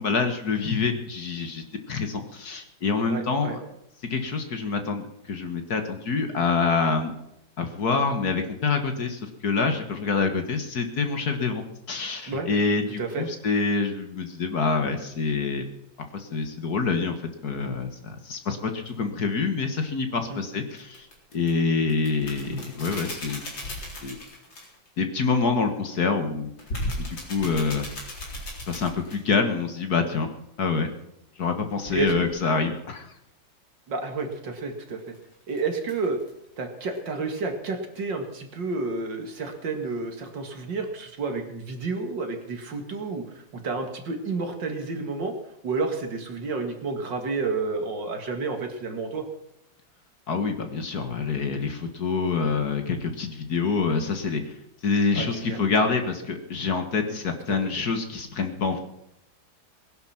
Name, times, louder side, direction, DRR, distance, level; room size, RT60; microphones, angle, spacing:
voice 1, 0.0-3.6 4.1-7.1 7.6-11.6 11.9-15.7 16.1-17.2 17.4-21.1 21.3-23.5 24.0-24.2 25.0-26.5 27.1-27.9 28.7-30.3 30.6-30.9 31.4-33.1 50.3-54.5 54.8-58.8, left 4 dB, 55° left, 6 dB, 2.0 m, -26 dB
voice 2, 3.1-3.6 12.3-12.5 13.0-13.2 20.3-20.4 31.9-32.3 33.9-35.1 35.5-36.2 36.6-45.3 45.6-49.2 55.1-55.6 57.1-57.2 57.5-57.6, right 3 dB, 65° right, 5 dB, 2.7 m, -30 dB
sound 1, 18.9-19.0 20.8-21.5 21.9-24.9 26.6-29.3 31.8-32.4 34.8-36.5 36.9-37.0 37.3-37.5, left 1 dB, 70° left, 4.7 m, -36 dB
20.0 x 11.0 x 5.9 m, 0.82 s
omnidirectional pair, 2.1 m